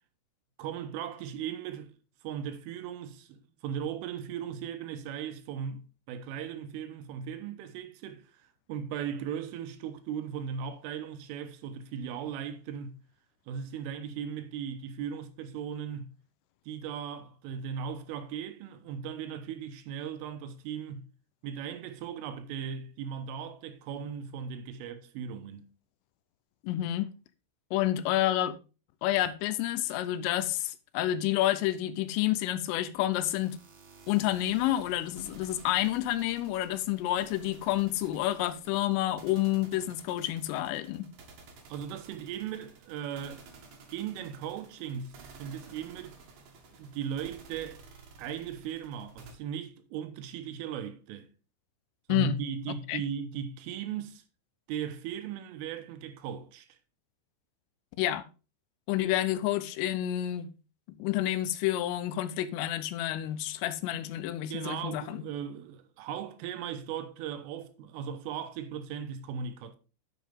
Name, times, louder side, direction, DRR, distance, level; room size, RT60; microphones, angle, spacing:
voice 1, 0.6-1.9 2.2-13.0 13.5-16.2 16.7-21.1 21.4-25.7 41.7-43.5 43.9-46.2 46.7-47.8 48.2-51.3 52.1-54.2 54.7-56.8 64.5-69.8, right 8 dB, 80° right, 3.4 m, -38 dB
voice 2, 26.6-27.1 27.7-28.6 29.0-33.6 34.1-41.1 52.1-52.4 52.9-53.0 58.0-58.3 58.9-60.5 61.0-65.2, left 14 dB, 85° left, 3.2 m, -29 dB
sound 1, 33.1-49.3, right 4 dB, 60° right, 2.8 m, -54 dB
10.5 x 7.3 x 3.6 m
omnidirectional pair, 5.8 m